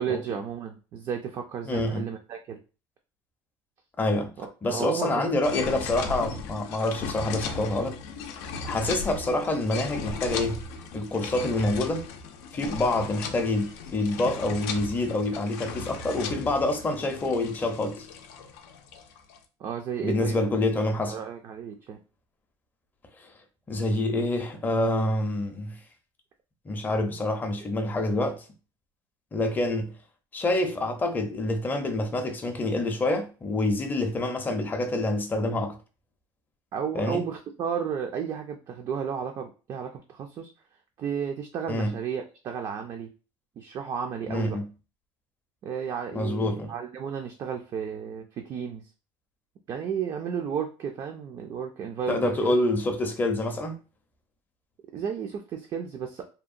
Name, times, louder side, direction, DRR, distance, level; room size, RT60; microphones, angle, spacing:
voice 1, 0.0-2.6 4.4-5.2 19.6-20.5 21.1-22.0 36.7-40.5 41.0-43.1 43.6-44.6 45.6-48.8 49.7-52.5 54.9-56.2, right 7 dB, 40° right, 0.4 m, -33 dB
voice 2, 1.6-2.1 4.0-4.3 4.6-8.0 8.6-10.6 10.9-12.1 12.5-18.1 20.0-21.2 23.2-23.3 23.7-25.8 26.6-28.4 29.3-29.9 30.3-35.8 36.9-37.2 41.7-41.9 44.3-44.7 46.1-46.7 52.1-53.8, left 2 dB, 20° left, 0.5 m, -27 dB
sound 1, 5.4-19.4, left 4 dB, 85° left, 0.4 m, -37 dB
2.8 x 2.1 x 2.4 m
cardioid pair, 130°, 10 cm